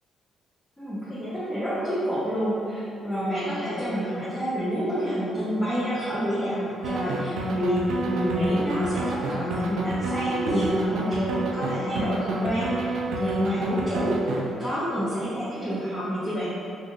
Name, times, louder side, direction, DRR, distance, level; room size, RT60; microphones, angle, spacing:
voice 1, 0.8-16.5, equal, 10° left, -12 dB, 0.9 m, -28 dB
sound 1, 6.8-14.4, right 2 dB, 85° right, 0.4 m, -28 dB
3.5 x 2.6 x 2.4 m, 2.4 s
cardioid pair, 90°, 0 cm